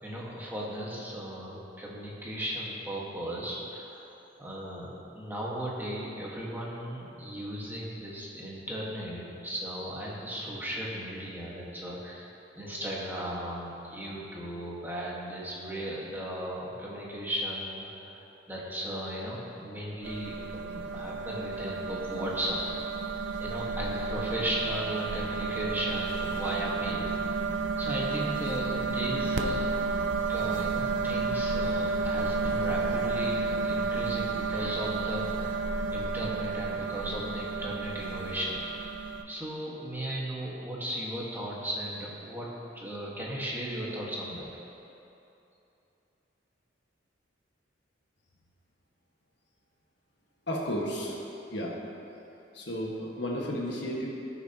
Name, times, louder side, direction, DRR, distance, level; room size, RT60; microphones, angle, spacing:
voice 1, 0.0-4.1 4.4-12.3 12.5-27.4 27.8-29.7 30.1-42.5 42.7-44.5, equal, 10° right, -5 dB, 1.6 m, -36 dB
sound 1, 20.0-39.2, right 4 dB, 80° right, 0.6 m, -31 dB
voice 2, 50.5-51.2 51.5-51.7 52.5-54.1, equal, 65° left, -3 dB, 1.6 m, -33 dB
18.5 x 6.9 x 2.9 m, 2.8 s
head